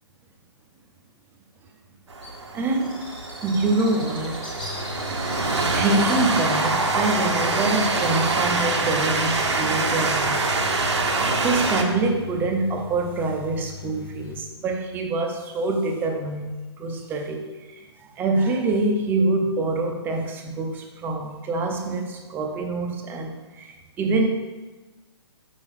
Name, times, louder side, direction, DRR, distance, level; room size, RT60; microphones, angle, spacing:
Train, 2.1-11.8, right 3 dB, 75° right, 0.8 m, -25 dB
Bird, 2.2-9.4, left 1 dB, 5° left, 1.2 m, -41 dB
voice 1, 2.5-3.1 3.4-4.4 5.7-10.4 11.4-24.3, right 2 dB, 15° right, 3 dB, 0.6 m, -25 dB
sound 1, 4.6-14.4, left 6 dB, 55° left, 0.5 m, -40 dB
5.8 x 5.3 x 3.3 m, 1.3 s
figure-of-eight pair, 130°, 15 cm